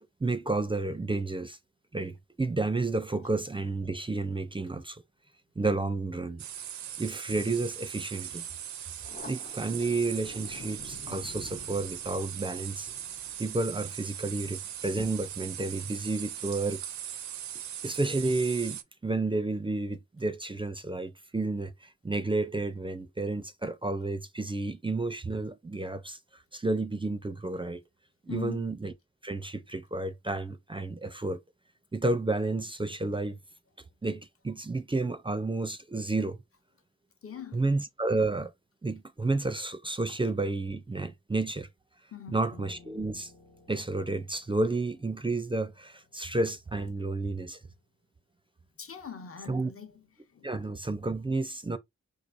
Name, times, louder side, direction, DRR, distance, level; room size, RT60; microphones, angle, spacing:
voice 1, 0.2-1.6 1.9-5.0 5.6-6.4 7.0-8.5 9.2-12.9 13.4-16.8 17.8-21.7 22.0-26.2 26.5-27.8 28.3-28.9 29.2-31.4 31.9-33.4 34.0-36.4 37.5-38.5 38.8-41.7 42.3-43.3 43.7-47.6 49.5-49.7 50.4-51.8, right 2 dB, 15° right, 0.5 m, -31 dB
sound 1, 6.4-18.8, right 10 dB, 70° right, 0.5 m, -40 dB
Thunder, 9.0-16.1, left 5 dB, 30° left, 0.6 m, -50 dB
voice 2, 28.3-28.7 37.2-37.6 42.1-42.5 48.8-50.0 50.3-50.5, left 8 dB, 50° left, 0.9 m, -42 dB
Piano, 42.5-47.8, left 4 dB, 70° left, 1.3 m, -59 dB
4.6 x 2.3 x 2.5 m
supercardioid pair, 40°, 30 cm